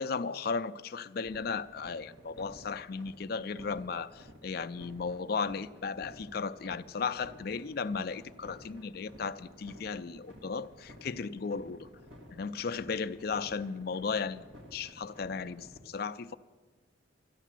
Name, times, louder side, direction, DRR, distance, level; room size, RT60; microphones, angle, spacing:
voice 1, 0.0-11.9 12.3-14.5 14.7-16.3, left 5 dB, 50° left, 0.4 m, -35 dB
sound 1, 1.2-15.8, equal, 70° right, 2.0 m, -53 dB
13.5 x 10.0 x 7.5 m
head